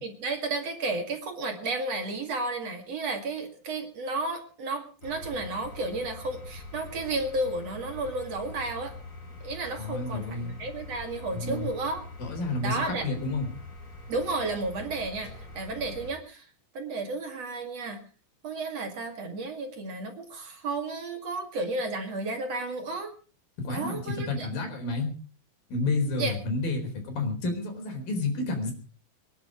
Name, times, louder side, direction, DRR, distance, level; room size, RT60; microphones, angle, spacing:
voice 1, 0.0-8.9 9.4-12.0 12.6-13.1 14.1-16.5 16.7-18.0 18.4-23.1 23.7-24.5 26.1-26.3, right 2 dB, 50° right, 5 dB, 3.2 m, -32 dB
sound 1, 5.0-16.1, left 2 dB, 40° left, 4.6 m, -44 dB
voice 2, 9.8-10.6 11.3-11.7 12.2-13.5 23.6-25.1 25.7-28.7, left 3 dB, 85° left, 4 dB, 5.9 m, -30 dB
25.0 x 10.5 x 4.9 m, 0.38 s
omnidirectional pair, 4.0 m